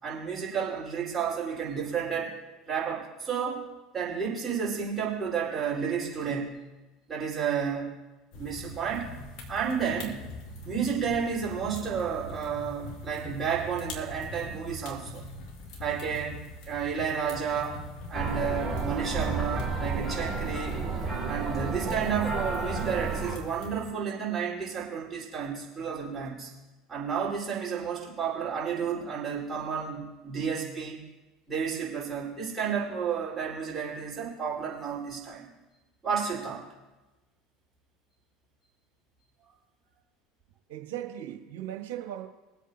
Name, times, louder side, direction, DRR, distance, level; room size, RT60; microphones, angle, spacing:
voice 1, 0.0-2.3 2.7-3.6 3.9-6.6 7.1-7.9 8.3-9.1 9.5-10.3 10.6-15.2 15.8-17.8 18.1-20.8 21.2-26.5 26.9-31.0 31.5-35.5 36.0-36.6, right 7 dB, 25° right, -6 dB, 4.9 m, -31 dB
sound 1, 8.3-23.9, left 1 dB, 60° left, 2.6 m, -43 dB
sound 2, 18.1-23.4, right 4 dB, 10° right, 4.2 m, -31 dB
voice 2, 40.7-42.2, right 11 dB, 70° right, 2 dB, 1.9 m, -37 dB
23.5 x 8.3 x 3.0 m, 1.1 s
hypercardioid pair, 75°, 0 cm